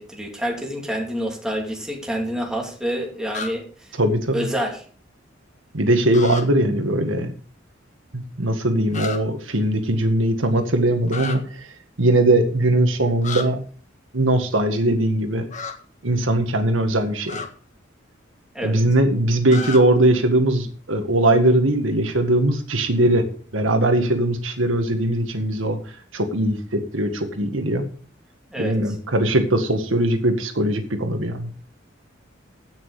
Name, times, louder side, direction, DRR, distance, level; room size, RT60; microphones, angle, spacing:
voice 1, 0.0-3.9 4.3-4.8 18.5-18.8 28.5-28.7, equal, 5° right, 0 dB, 2.8 m, -27 dB
sound 1, 3.3-3.5 6.1-6.4 8.9-9.2 11.1-11.4 13.2-13.4 15.5-15.7 17.2-17.5 19.5-19.8, left 5 dB, 40° left, 1.7 m, -31 dB
voice 2, 4.0-4.5 5.7-7.3 8.1-13.6 14.1-15.5 16.0-17.4 18.6-23.2 23.5-27.8 28.6-31.5, right 1 dB, 85° right, 6 dB, 1.8 m, -20 dB
16.5 x 6.3 x 4.9 m, 0.43 s
head